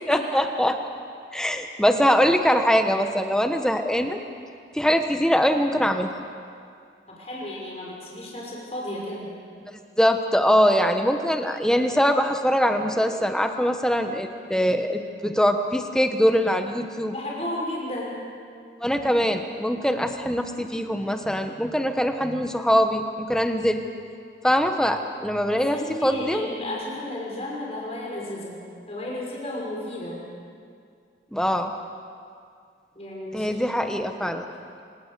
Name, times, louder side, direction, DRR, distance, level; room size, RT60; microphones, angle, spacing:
voice 1, 0.1-0.8 1.3-4.2 4.7-6.1 10.0-17.1 18.8-23.8 24.4-26.5 31.3-31.7 33.3-34.5, equal, 5° left, 6 dB, 1.1 m, -22 dB
voice 2, 7.1-9.3 17.1-18.2 25.5-28.6 28.9-30.2 32.9-34.4, left 1 dB, 35° left, -3 dB, 5.9 m, -33 dB
27.5 x 18.5 x 6.7 m, 2.3 s
head